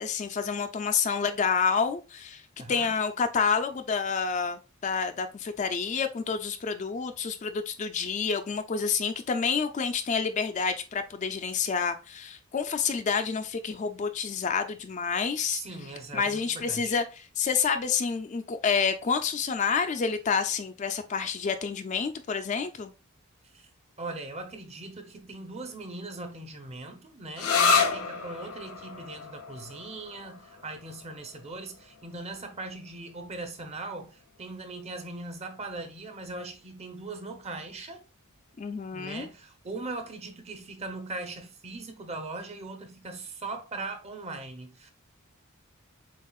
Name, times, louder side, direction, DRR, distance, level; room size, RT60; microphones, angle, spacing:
voice 1, 0.0-2.4 2.7-15.6 16.1-22.9 38.6-39.3, left 6 dB, 35° left, 0.3 m, -28 dB
voice 2, 2.6-2.9 15.4-16.9 23.5-23.7 24.0-38.0 38.9-44.9, right 2 dB, 30° right, 0.7 m, -40 dB
sound 1, 27.4-34.7, left 5 dB, 85° left, 0.6 m, -31 dB
7.2 x 2.4 x 2.3 m
head